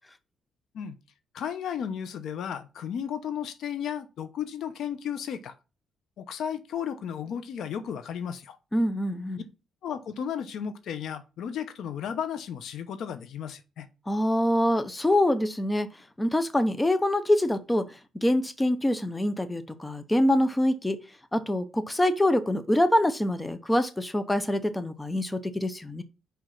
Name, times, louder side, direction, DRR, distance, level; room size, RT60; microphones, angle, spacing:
voice 1, 1.3-5.5 6.2-8.6 9.8-13.9, left 8 dB, 75° left, 0.9 m, -34 dB
voice 2, 8.7-9.4 14.1-15.9 16.2-21.0 21.3-26.0, left 1 dB, 15° left, 0.8 m, -25 dB
5.2 x 5.1 x 5.9 m
cardioid pair, 90°, 0 cm